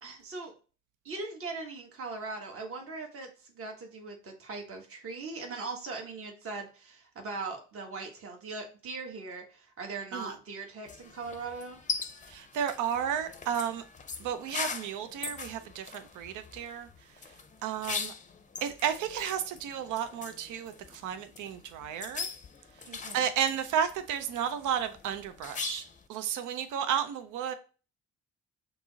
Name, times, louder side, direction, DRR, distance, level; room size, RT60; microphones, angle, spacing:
voice 1, 0.0-0.5 1.0-11.8 22.8-23.3, right 3 dB, 50° right, 1.2 m, -40 dB
sound 1, 10.8-26.1, left 5 dB, 25° left, 0.5 m, -41 dB
voice 2, 12.3-13.8 14.2-16.9 17.6-18.1 18.6-20.7 21.0-22.3 23.1-25.8 26.1-27.5, right 8 dB, 80° right, 0.5 m, -32 dB
5.9 x 2.0 x 3.8 m
cardioid pair, 90°, 30 cm